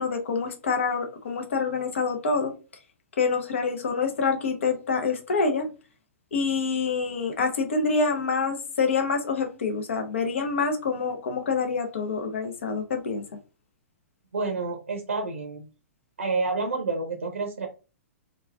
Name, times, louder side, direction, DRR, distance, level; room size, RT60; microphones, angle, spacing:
voice 1, 0.0-2.5 3.2-5.7 6.3-13.2, left 4 dB, 60° left, 0.8 m, -26 dB
voice 2, 14.3-15.6 16.2-17.7, right 3 dB, 70° right, 0.7 m, -29 dB
3.0 x 2.3 x 2.4 m
figure-of-eight pair, 110°, 8 cm